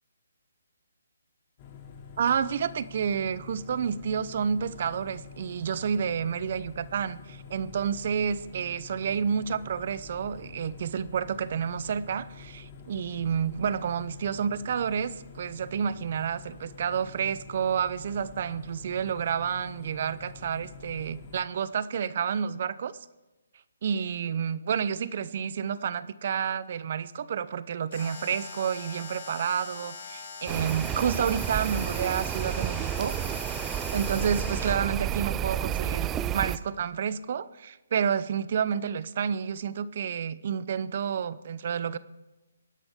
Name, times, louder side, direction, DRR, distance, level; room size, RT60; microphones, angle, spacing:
sound 1, 1.6-21.4, left 5 dB, 30° left, 2.7 m, -47 dB
voice 1, 2.2-22.9 23.8-33.2 33.9-42.0, right 7 dB, 50° right, 16 dB, 0.7 m, -30 dB
Alarm, 27.9-34.9, left 5 dB, 50° left, 4.8 m, -42 dB
sound 2, 30.5-36.6, right 10 dB, 15° right, 0.4 m, -31 dB
23.0 x 11.0 x 3.7 m, 1.1 s
hypercardioid pair, 155°, 0 cm